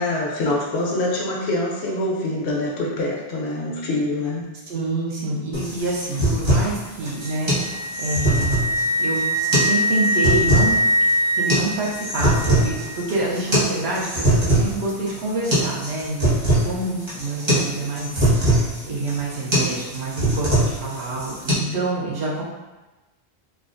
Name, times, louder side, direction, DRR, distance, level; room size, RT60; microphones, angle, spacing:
voice 1, 0.0-4.5, left 2 dB, 90° left, -3 dB, 1.0 m, -25 dB
voice 2, 4.7-8.6 9.0-9.2 9.6-10.9 11.4-22.4, right 2 dB, 85° right, -4 dB, 1.0 m, -27 dB
sound 1, 5.5-21.5, right 1 dB, 30° right, 0.9 m, -22 dB
Wind instrument woodwind instrument, 7.1-13.1, equal, 15° left, 0.9 m, -23 dB
3.6 x 2.3 x 2.5 m, 1.1 s
omnidirectional pair, 1.1 m